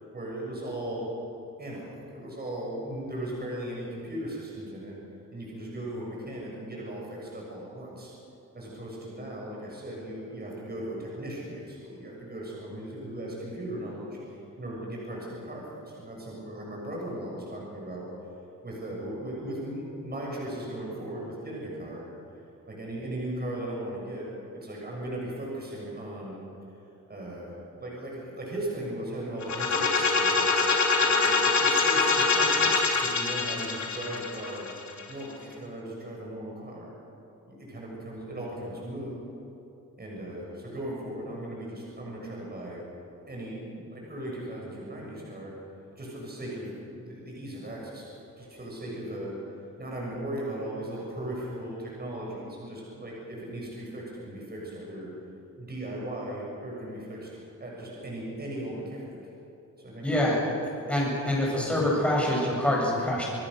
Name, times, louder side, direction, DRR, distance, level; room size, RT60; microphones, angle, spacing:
voice 1, 0.1-1.1 1.6-4.9 5.3-8.1 8.5-18.1 18.6-22.0 22.7-24.2 24.6-26.4 27.1-34.7 35.1-36.9 37.5-39.1 40.0-42.8 43.3-45.5 46.0-49.4 49.8-55.1 55.6-59.1 59.8-60.4 61.4-62.2, right 1 dB, 30° right, -3 dB, 7.0 m, -37 dB
sound 1, 29.4-35.2, left 4 dB, 55° left, 3.6 m, -24 dB
voice 2, 60.0-60.4 60.9-63.2, left 1 dB, 5° left, -4 dB, 7.6 m, -25 dB
27.0 x 20.5 x 6.6 m, 2.9 s
wide cardioid pair, 135°, 34 cm